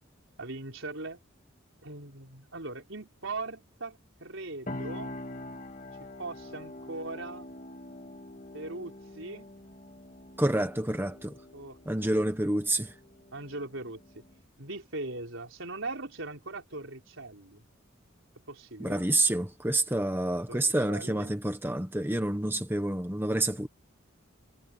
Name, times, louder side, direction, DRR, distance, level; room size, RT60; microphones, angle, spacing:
voice 1, 0.4-1.2 1.8-5.2 6.2-7.5 8.5-9.5 11.5-12.1 13.3-14.2 14.6-17.6 18.5-19.1 20.5-21.3, right 2 dB, 70° right, 4.5 m, -40 dB
sound 1, 4.7-14.4, left 1 dB, 35° left, 2.1 m, -45 dB
voice 2, 10.4-11.3 11.9-12.9 18.8-23.7, right 1 dB, 10° right, 1.1 m, -28 dB
head